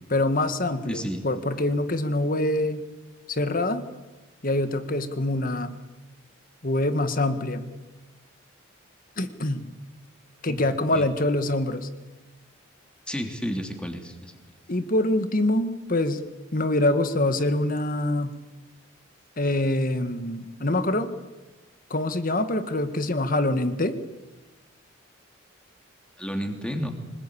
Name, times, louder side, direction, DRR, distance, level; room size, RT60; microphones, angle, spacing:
voice 1, 0.1-2.8 3.3-3.8 4.4-5.8 6.6-7.7 9.2-9.7 10.4-11.9 14.7-16.2 16.5-18.4 19.4-21.1 21.9-24.0, left 1 dB, 45° left, 10 dB, 1.7 m, -25 dB
voice 2, 0.9-1.3 10.4-10.6 10.9-11.1 13.1-14.3 26.2-26.9, equal, 5° left, 4 dB, 2.9 m, -31 dB
25.5 x 20.5 x 8.7 m, 1.2 s
head